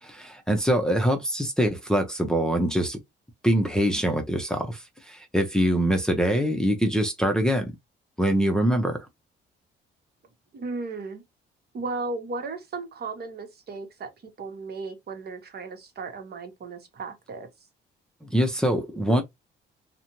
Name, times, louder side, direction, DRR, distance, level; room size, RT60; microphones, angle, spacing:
voice 1, 0.0-3.0 3.4-7.7 8.2-9.0 18.2-19.2, equal, 5° left, 0.6 m, -24 dB
voice 2, 10.5-11.2 11.7-14.1 14.4-17.5, right 3 dB, 55° right, 1.0 m, -35 dB
2.5 x 2.1 x 2.9 m
cardioid pair, 90°, 20 cm